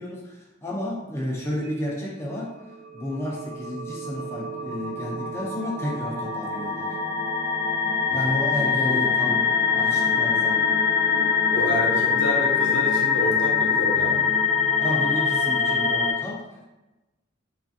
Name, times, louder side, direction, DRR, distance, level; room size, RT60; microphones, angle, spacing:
voice 1, 0.0-2.5 2.9-6.9 8.1-10.7 11.8-12.0 14.8-16.6, left 1 dB, 15° left, -4 dB, 0.3 m, -31 dB
sound 1, 2.9-16.1, left 6 dB, 60° right, 0.4 m, -24 dB
voice 2, 11.5-14.3, left 1 dB, 60° left, -3 dB, 0.8 m, -29 dB
3.1 x 2.4 x 2.5 m, 1.0 s
head